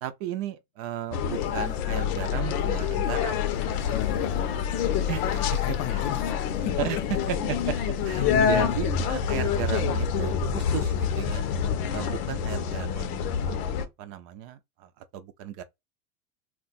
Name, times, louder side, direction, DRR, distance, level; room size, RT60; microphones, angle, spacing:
voice 1, 0.0-3.6 5.1-5.2 5.7-6.1 6.8-7.0 7.3-11.5 11.9-13.7 14.0-15.6, right 10 dB, 55° right, 0.6 m, -35 dB
sound 1, 1.1-13.8, left 8 dB, 75° left, 0.7 m, -27 dB
sound 2, 1.3-11.7, right 4 dB, 25° right, 0.8 m, -45 dB
voice 2, 3.9-5.0 5.4-6.3 6.6-6.8, left 11 dB, 40° left, 0.5 m, -36 dB
2.2 x 2.2 x 3.9 m
supercardioid pair, 110°, 45 cm